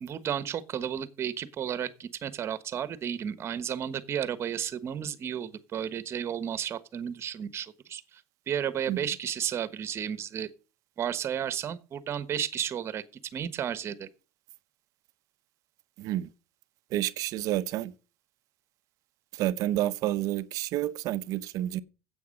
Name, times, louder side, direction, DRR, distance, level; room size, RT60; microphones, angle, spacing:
voice 1, 0.0-8.0 8.5-10.5 11.0-13.0 13.3-14.1, right 9 dB, 35° right, 1.3 m, -33 dB
voice 2, 16.0-16.3 16.9-17.9 19.3-21.8, right 14 dB, 55° right, 0.7 m, -29 dB
9.5 x 8.1 x 6.5 m
supercardioid pair, 125°, 7 cm